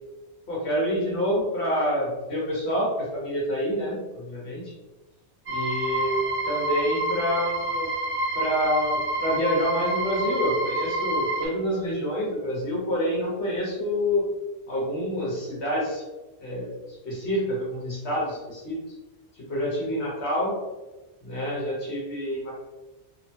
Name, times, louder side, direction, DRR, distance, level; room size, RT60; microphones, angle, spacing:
voice 1, 0.5-4.7 5.5-6.2 6.4-7.9 8.3-14.2 14.7-16.0 16.4-16.7 17.0-18.8 19.5-20.6 21.2-22.5, equal, 75° left, -4 dB, 1.3 m, -27 dB
sound 1, 5.5-11.5, right 2 dB, 40° right, 0.5 m, -28 dB
3.1 x 2.1 x 2.7 m, 1.1 s
omnidirectional pair, 1.1 m